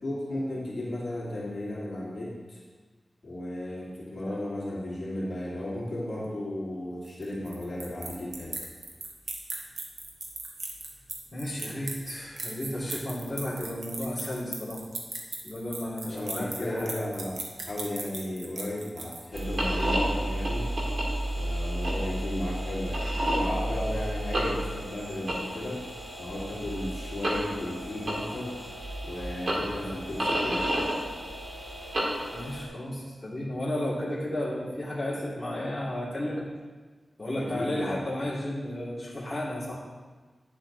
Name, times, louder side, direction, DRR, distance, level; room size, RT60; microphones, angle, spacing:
voice 1, 0.0-2.6 3.2-8.7 16.0-20.7 21.4-25.9 26.2-28.6 29.0-30.8 37.4-38.0, left 1 dB, 45° left, -7 dB, 2.5 m, -35 dB
sound 1, 7.0-19.6, right 3 dB, 85° right, 1.3 m, -38 dB
voice 2, 11.3-14.8 15.4-17.0 32.3-36.4 37.2-39.8, left 1 dB, 15° left, -8 dB, 2.5 m, -33 dB
sound 2, 19.3-32.6, right 1 dB, 55° right, 2.1 m, -31 dB
10.0 x 7.4 x 3.9 m, 1.4 s
wide cardioid pair, 130°, 0 cm